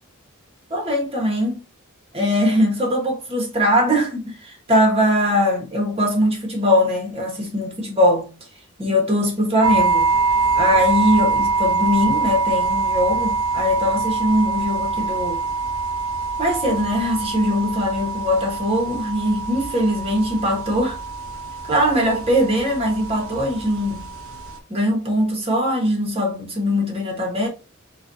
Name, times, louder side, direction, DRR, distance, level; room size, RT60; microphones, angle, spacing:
voice 1, 0.7-1.6 2.1-8.3 8.8-10.1 10.5-15.4 16.4-21.0 21.6-24.1 24.7-27.5, equal, 30° right, 1.3 m, -21 dB
sound 1, 9.6-24.6, right 4 dB, 65° right, 0.7 m, -24 dB
4.0 x 2.6 x 2.7 m
head